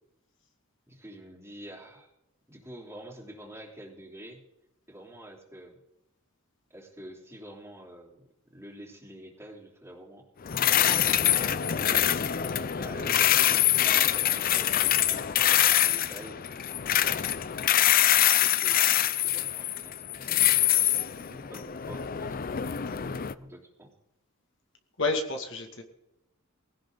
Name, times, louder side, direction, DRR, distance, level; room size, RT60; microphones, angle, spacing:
voice 1, 0.9-2.1 2.5-4.4 4.9-5.8 6.7-10.3 10.7-11.3 11.7-12.3 12.6-13.3 13.9-16.5 18.4-18.9 19.2-23.9, right 1 dB, 10° right, -1 dB, 3.3 m, -48 dB
sound 1, 10.5-23.3, left 11 dB, 40° left, 0.5 m, -24 dB
voice 2, 25.0-25.8, left 3 dB, 60° left, 3 dB, 2.2 m, -29 dB
20.5 x 17.0 x 3.9 m, 0.90 s
head